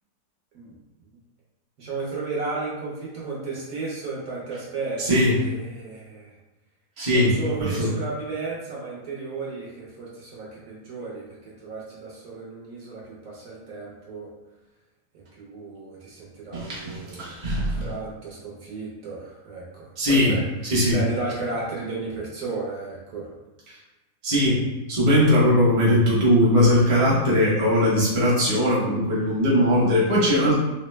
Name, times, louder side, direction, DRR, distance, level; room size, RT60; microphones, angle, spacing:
voice 1, 1.8-6.3 7.1-14.3 15.1-20.5 20.9-23.3, right 3 dB, 60° right, -5 dB, 1.1 m, -34 dB
voice 2, 5.0-5.3 7.0-7.3 7.8-7.9 16.5-17.8 20.0-20.3 20.6-21.0 24.2-30.5, left 1 dB, 30° right, -7 dB, 0.6 m, -20 dB
3.1 x 2.0 x 3.1 m, 1.1 s
omnidirectional pair, 1.8 m